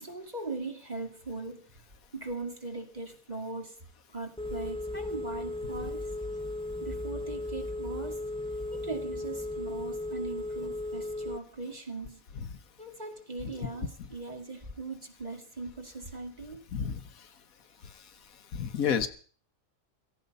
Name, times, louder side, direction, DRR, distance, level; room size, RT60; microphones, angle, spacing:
voice 1, 0.0-1.7 2.1-3.8 4.1-6.0 6.8-8.2 8.7-12.2 12.8-16.7, right 3 dB, 30° right, 4 dB, 2.6 m, -40 dB
Telephone, 4.4-11.4, left 2 dB, 5° left, 0.8 m, -36 dB
voice 2, 16.7-17.0 18.5-19.1, left 7 dB, 80° left, 10 dB, 1.7 m, -29 dB
16.5 x 15.5 x 5.4 m, 0.42 s
omnidirectional pair, 1.4 m